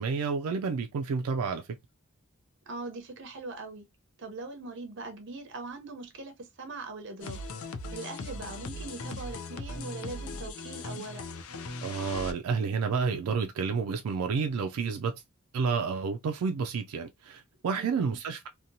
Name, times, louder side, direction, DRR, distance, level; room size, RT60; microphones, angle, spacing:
voice 1, 0.0-1.7 11.8-15.1 15.5-18.5, right 5 dB, 90° right, 0.3 m, -30 dB
voice 2, 2.7-3.9 4.2-11.2 17.7-18.1, right 3 dB, 55° right, 0.7 m, -41 dB
sound 1, 7.2-12.3, left 3 dB, 75° left, 0.4 m, -39 dB
2.8 x 2.2 x 2.6 m
head